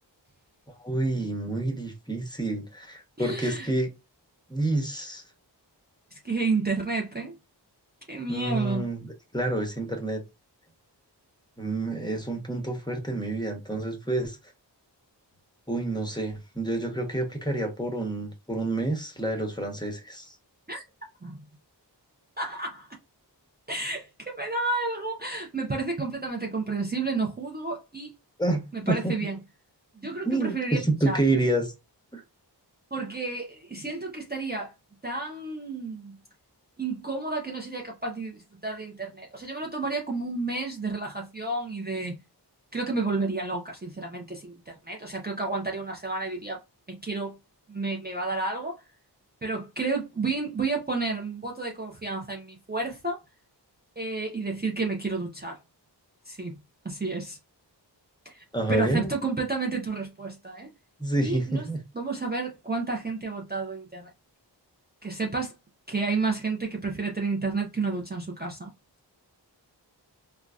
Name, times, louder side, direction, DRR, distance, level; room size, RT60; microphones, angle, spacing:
voice 1, 0.8-3.9 4.5-5.2 8.3-9.1 9.3-10.2 11.6-14.4 15.7-20.3 28.4-28.6 28.9-29.1 30.2-31.7 32.1-32.2 58.5-59.1 61.0-61.8, right 2 dB, 10° left, 0.9 m, -28 dB
voice 2, 3.2-3.7 6.1-7.3 8.1-8.9 20.7-20.8 21.2-21.4 22.4-22.9 23.7-28.1 28.7-29.4 30.0-30.8 31.0-31.2 32.9-34.7 35.0-36.2 36.8-42.2 42.7-46.6 46.9-47.3 47.7-48.8 49.4-53.2 54.0-55.6 56.3-56.6 56.8-57.4 58.2-58.4 58.7-60.7 61.2-61.7 61.9-64.1 65.0-65.5 65.9-68.7, right 3 dB, 25° right, 0.6 m, -31 dB
3.7 x 2.2 x 2.3 m
wide cardioid pair, 60°, 43 cm